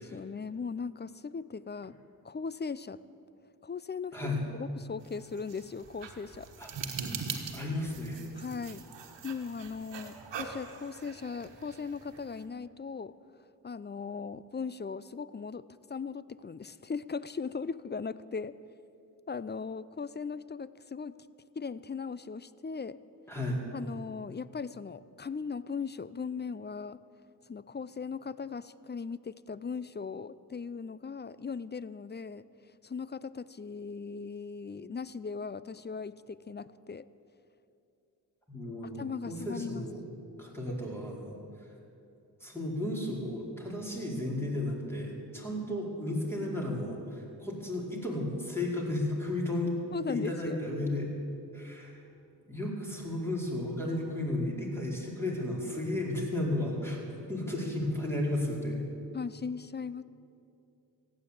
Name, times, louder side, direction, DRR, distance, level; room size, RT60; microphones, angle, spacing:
voice 1, 0.0-2.0 2.2-3.0 3.6-4.2 4.5-6.5 8.4-8.8 9.2-13.1 13.6-18.6 19.3-21.2 21.6-23.0 23.7-27.0 27.5-32.4 32.8-37.1 39.0-39.8 45.7-45.8 49.9-50.6 59.1-60.0, left 5 dB, 25° left, 17 dB, 0.5 m, -38 dB
sound 1, 5.0-12.5, right 5 dB, 80° right, 1.5 m, -42 dB
voice 2, 7.5-8.2 23.3-23.6 38.5-40.0 40.4-41.4 42.4-49.7 50.1-51.1 51.5-52.0 52.5-57.0 57.3-58.8, left 1 dB, 5° left, -3 dB, 4.7 m, -33 dB
15.0 x 9.7 x 8.4 m, 2.7 s
cardioid pair, 45°, 42 cm